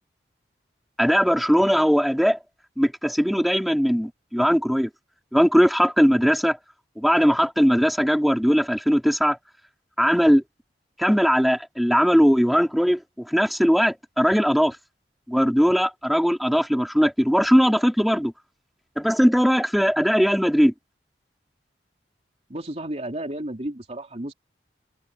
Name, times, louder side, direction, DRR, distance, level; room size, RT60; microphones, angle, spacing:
voice 1, 1.0-2.4 2.8-4.9 5.3-6.6 7.0-9.4 10.0-10.4 11.0-14.8 15.3-18.3 19.0-20.7, equal, ahead, 4.0 m, -19 dB
voice 2, 22.5-24.3, right 1 dB, 35° right, 3.3 m, -32 dB
head